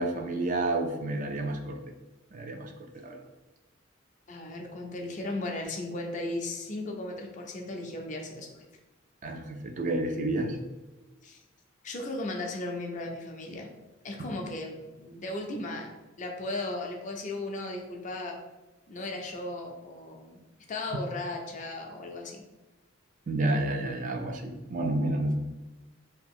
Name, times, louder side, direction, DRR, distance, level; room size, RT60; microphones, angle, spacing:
voice 1, 0.0-1.8 2.3-3.3 9.2-10.6 23.3-25.4, right 2 dB, 40° right, 4 dB, 0.3 m, -30 dB
voice 2, 4.3-8.6 11.2-11.4 11.8-13.7 14.0-15.9 16.2-18.4 18.9-20.4 20.7-22.4, left 2 dB, 40° left, 2 dB, 0.5 m, -36 dB
2.8 x 2.4 x 3.6 m, 1.1 s
head